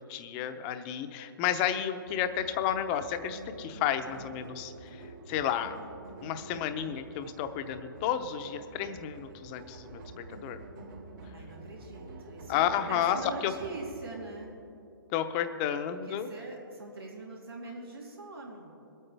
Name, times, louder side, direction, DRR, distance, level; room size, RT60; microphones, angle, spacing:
voice 1, 0.0-5.8 6.2-10.6 12.5-13.2 13.4-13.5 15.1-16.3, left 10 dB, 25° left, 9 dB, 0.6 m, -32 dB
sound 1, 2.1-14.2, right 2 dB, 60° right, 3.4 m, -48 dB
voice 2, 11.3-14.5 15.9-18.7, right 2 dB, 90° right, -2 dB, 3.1 m, -42 dB
23.0 x 8.7 x 3.4 m, 2.7 s
hypercardioid pair, 145°, 12 cm